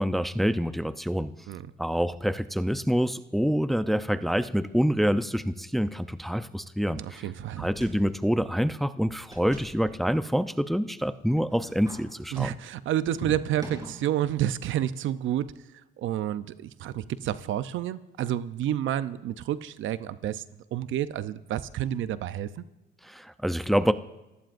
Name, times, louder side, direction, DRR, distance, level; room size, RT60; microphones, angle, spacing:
voice 1, 0.0-1.3 1.8-7.2 7.6-12.5 23.0-23.9, equal, ahead, 11 dB, 0.6 m, -26 dB
voice 2, 7.0-7.7 12.3-15.5 16.0-20.4 20.7-22.6, right 11 dB, 75° right, 13 dB, 0.7 m, -29 dB
sound 1, 7.8-8.3 8.5-8.6 9.1-10.3 11.4-12.1 13.2-14.0, right 2 dB, 20° right, 4.7 m, -41 dB
29.5 x 15.5 x 2.6 m, 1.0 s
cardioid pair, 90°, 20 cm